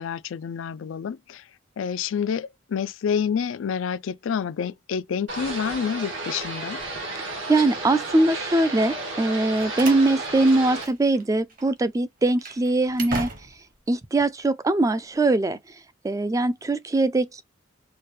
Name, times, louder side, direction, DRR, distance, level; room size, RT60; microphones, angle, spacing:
voice 1, 0.0-1.4 1.8-6.8, left 7 dB, 75° left, 0.4 m, -28 dB
sound 1, 5.3-10.8, right 2 dB, 75° right, 1.7 m, -33 dB
voice 2, 7.5-13.3 13.9-15.6 16.0-17.4, right 2 dB, 15° right, 0.4 m, -22 dB
Slam, 9.2-11.2 11.5-11.7 12.2-13.8, right 3 dB, 45° right, 1.1 m, -36 dB
4.5 x 2.3 x 3.1 m
head